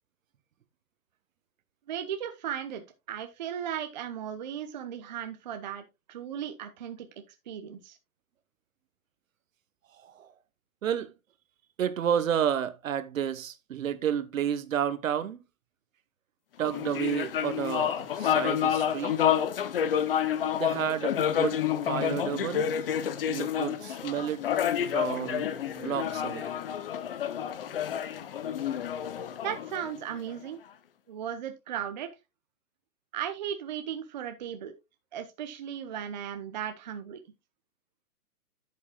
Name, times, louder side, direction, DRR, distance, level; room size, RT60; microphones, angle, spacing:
voice 1, 1.9-7.1 7.5-8.0 29.4-30.6 31.1-32.1 33.1-34.7 35.1-37.2, right 9 dB, 30° right, 0.7 m, -36 dB
voice 2, 10.8-11.1 11.8-15.4 16.6-19.2 20.5-22.7 23.3-24.4 24.9-25.5 25.8-26.5, right 9 dB, 60° right, 1.1 m, -31 dB
sound 1, 16.6-30.3, left 9 dB, 40° left, 0.7 m, -29 dB
12.0 x 7.5 x 2.3 m
hypercardioid pair, 165°, 46 cm